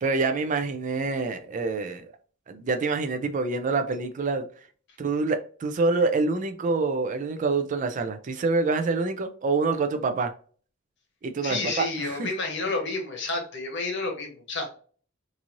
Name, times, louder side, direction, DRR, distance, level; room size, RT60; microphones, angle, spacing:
voice 1, 0.0-2.1 2.5-4.5 5.0-10.3 11.2-12.3, right 3 dB, 40° right, 0.3 m, -26 dB
voice 2, 11.4-14.7, left 3 dB, 60° left, 0.9 m, -30 dB
3.0 x 2.6 x 2.5 m
head